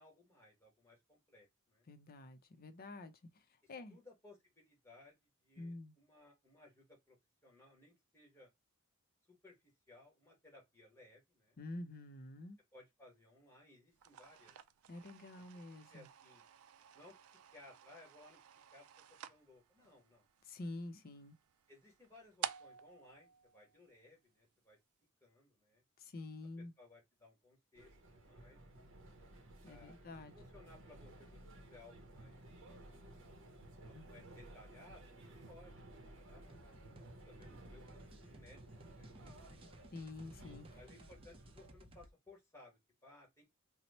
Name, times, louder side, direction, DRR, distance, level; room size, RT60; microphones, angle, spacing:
voice 1, 0.0-1.9 3.6-7.2 7.4-8.5 9.3-11.6 12.7-14.6 15.4-15.5 15.9-16.4 16.9-17.1 17.5-18.4 18.7-18.8 19.3-20.3 21.7-24.8 25.2-25.8 26.8-28.6 29.6-29.9 30.3-31.4 31.7-32.9 33.8-38.6 39.0-39.7 40.8-43.4, left 2 dB, 15° left, 1.3 m, -62 dB
voice 2, 1.9-3.1 3.7-4.0 5.6-5.9 11.6-12.6 14.9-16.1 20.5-21.4 26.0-26.7 29.6-30.3 33.9-34.0 39.9-40.8, left 2 dB, 45° left, 0.5 m, -48 dB
sound 1, 13.9-24.3, right 9 dB, 80° right, 0.3 m, -51 dB
sound 2, 27.8-41.7, right 1 dB, 60° right, 0.7 m, -56 dB
sound 3, 36.5-42.1, right 1 dB, 25° right, 0.5 m, -59 dB
2.9 x 2.0 x 4.1 m
head